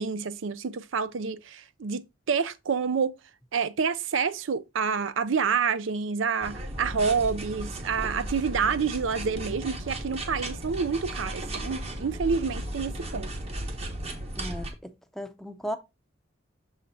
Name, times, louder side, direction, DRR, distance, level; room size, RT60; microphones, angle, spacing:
voice 1, 0.0-3.1 3.5-13.3, right 5 dB, 85° right, 0.5 m, -28 dB
sound 1, 6.4-14.7, right 1 dB, 30° right, 1.0 m, -35 dB
voice 2, 14.4-15.8, equal, ahead, 0.5 m, -36 dB
6.3 x 4.1 x 4.0 m
head